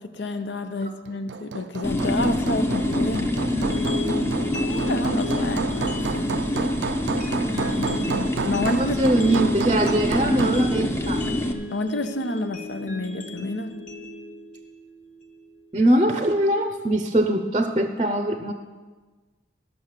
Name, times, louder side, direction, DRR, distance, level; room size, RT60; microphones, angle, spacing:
voice 1, 0.0-3.3 4.6-6.3 7.4-9.0 11.7-13.8, left 2 dB, 75° left, 9 dB, 0.8 m, -29 dB
Hammer, 1.1-10.7, right 5 dB, 85° right, 0.4 m, -32 dB
sound 1, 1.8-11.5, left 1 dB, 15° left, 0.7 m, -26 dB
sound 2, 3.5-15.6, left 1 dB, 45° left, 1.1 m, -35 dB
voice 2, 9.0-11.2 15.7-18.5, right 1 dB, 30° right, 7 dB, 0.6 m, -22 dB
13.0 x 6.4 x 7.4 m, 1.3 s
head